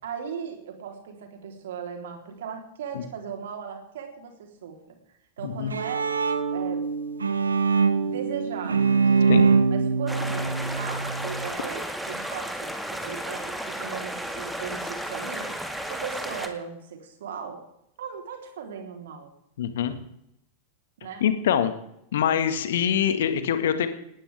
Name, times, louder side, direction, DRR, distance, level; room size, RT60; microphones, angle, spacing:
voice 1, 0.0-5.0 5.4-6.1 6.4-6.9 8.0-9.4 9.7-15.6 15.9-17.6 18.0-19.3 21.0-21.2, right 6 dB, 60° right, 3 dB, 3.8 m, -37 dB
Bowed string instrument, 5.4-11.5, right 5 dB, 75° right, 1.5 m, -23 dB
sound 1, 10.1-16.5, right 1 dB, 5° right, 2.1 m, -33 dB
voice 2, 19.6-20.0 21.2-21.7 22.1-23.9, left 9 dB, 60° left, 10 dB, 1.9 m, -24 dB
19.5 x 19.0 x 3.6 m, 0.78 s
figure-of-eight pair, 90°, 0 cm